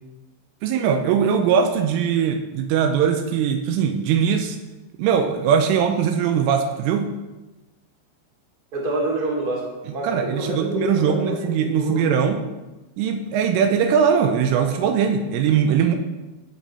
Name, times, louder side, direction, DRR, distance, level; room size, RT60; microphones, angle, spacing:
voice 1, 0.6-4.6 5.0-7.1 10.0-12.4 13.0-16.0, right 7 dB, 80° right, 5 dB, 3.2 m, -20 dB
voice 2, 8.7-12.1 13.5-13.7, right 1 dB, 35° right, -2 dB, 1.6 m, -27 dB
16.5 x 6.4 x 4.2 m, 1.1 s
omnidirectional pair, 6.0 m